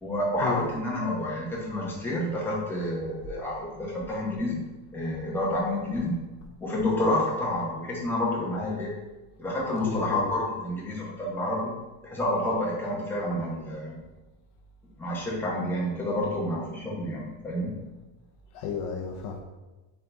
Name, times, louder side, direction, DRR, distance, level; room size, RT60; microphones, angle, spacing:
voice 1, 0.0-4.6 4.9-6.2 6.6-8.9 9.4-11.8 12.0-14.0 15.0-17.7, left 1 dB, 5° left, -6 dB, 0.9 m, -29 dB
voice 2, 9.8-10.3 18.5-19.4, left 5 dB, 60° left, 2 dB, 0.7 m, -32 dB
4.2 x 3.7 x 3.4 m, 1.1 s
cardioid pair, 155°, 48 cm